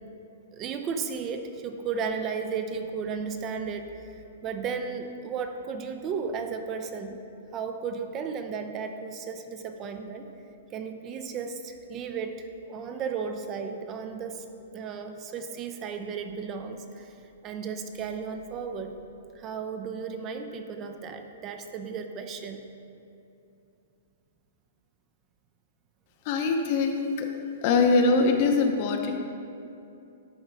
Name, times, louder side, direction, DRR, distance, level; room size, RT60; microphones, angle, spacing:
voice 1, 0.5-7.2 7.5-10.3 10.7-14.5 14.7-17.2 17.4-19.0 19.3-22.6, right 5 dB, 30° right, 6 dB, 0.5 m, -34 dB
voice 2, 26.2-27.3 27.6-29.2, left 3 dB, 45° left, 4 dB, 0.8 m, -23 dB
10.5 x 3.8 x 4.7 m, 2.7 s
hypercardioid pair, 140°, 0 cm